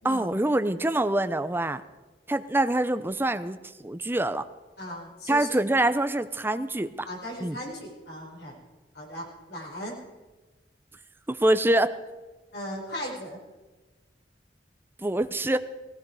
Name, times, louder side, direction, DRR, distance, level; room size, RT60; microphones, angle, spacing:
voice 1, 0.0-1.8 2.3-4.4 5.3-7.1 7.4-7.6 11.3-11.9 15.0-15.6, right 1 dB, 10° right, 11 dB, 0.6 m, -25 dB
voice 2, 4.8-5.5 7.1-8.6 8.9-10.0 12.5-13.4, equal, 70° left, -2 dB, 5.4 m, -37 dB
17.5 x 17.0 x 4.9 m, 1.2 s
head